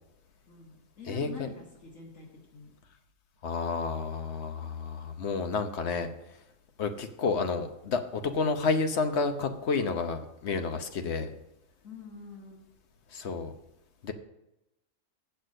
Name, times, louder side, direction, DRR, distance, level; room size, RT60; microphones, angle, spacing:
voice 1, 0.5-2.3 2.5-2.7 11.8-12.6, left 4 dB, 85° left, -4 dB, 2.1 m, -46 dB
voice 2, 1.1-1.5 3.4-6.1 6.8-11.3 13.1-13.5 14.0-14.1, left 4 dB, 60° left, 7 dB, 1.1 m, -30 dB
8.0 x 6.8 x 6.4 m, 0.89 s
omnidirectional pair, 1.3 m